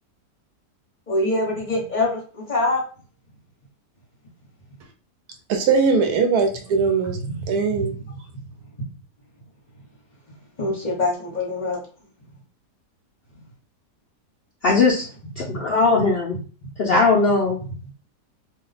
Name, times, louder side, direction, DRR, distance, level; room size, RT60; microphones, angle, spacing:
voice 1, 1.1-2.8 7.4-7.9 8.8-8.9 10.6-11.8 15.5-15.7 17.6-17.9, left 2 dB, 30° left, 1.1 m, -25 dB
voice 2, 5.5-7.2 7.5-7.9, right 5 dB, 75° right, 1.1 m, -20 dB
voice 3, 14.6-15.0 15.4-16.4 16.8-17.6, left 3 dB, 85° left, 0.5 m, -19 dB
2.8 x 2.2 x 3.9 m
omnidirectional pair, 1.7 m